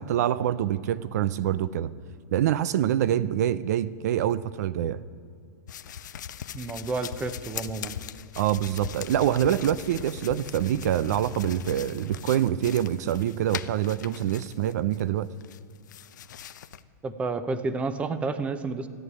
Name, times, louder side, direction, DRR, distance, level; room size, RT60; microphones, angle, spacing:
voice 1, 0.0-1.9 2.3-5.0 8.4-15.3, right 11 dB, 65° right, 17 dB, 0.5 m, -25 dB
sound 1, 5.7-15.0 15.4-16.8, left 9 dB, 90° left, 0.7 m, -40 dB
voice 2, 6.5-8.0 17.0-18.9, right 3 dB, 15° right, 12 dB, 0.7 m, -30 dB
14.0 x 9.3 x 9.7 m, 2.4 s
supercardioid pair, 155°, 10 cm